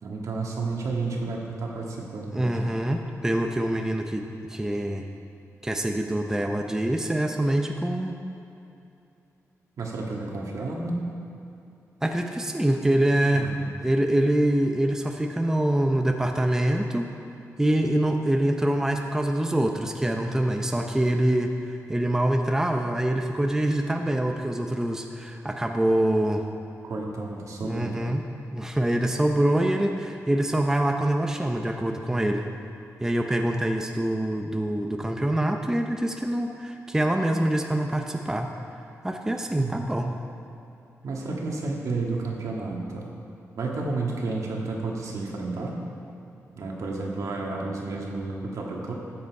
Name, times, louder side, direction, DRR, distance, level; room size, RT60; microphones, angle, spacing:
voice 1, 0.0-2.7 9.8-11.0 13.3-13.7 26.8-28.0 39.6-39.9 41.0-43.0 43.6-45.8 46.6-48.9, right 3 dB, 75° right, -1 dB, 1.8 m, -31 dB
voice 2, 2.3-5.1 5.6-8.2 12.0-13.5 13.8-17.1 17.6-26.4 27.6-28.2 28.5-32.5 33.0-38.5 39.0-40.2, right 1 dB, 10° right, 3 dB, 0.6 m, -25 dB
13.5 x 7.8 x 4.8 m, 2.7 s
wide cardioid pair, 110°, 6 cm